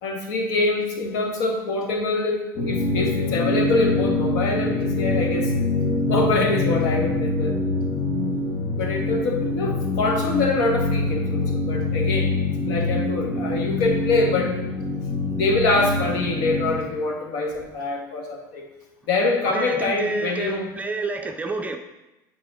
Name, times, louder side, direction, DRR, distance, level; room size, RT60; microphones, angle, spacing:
voice 1, 0.0-2.4 2.6-5.5 6.1-7.6 8.8-12.3 12.6-14.6 15.3-18.6 19.1-20.7, left 3 dB, 70° left, 1 dB, 1.6 m, -24 dB
sound 1, 2.6-16.8, left 2 dB, 25° left, 1.8 m, -24 dB
voice 2, 19.5-21.8, right 3 dB, 15° right, 3 dB, 0.5 m, -29 dB
7.3 x 4.2 x 4.9 m, 1.0 s
hypercardioid pair, 90°, 11 cm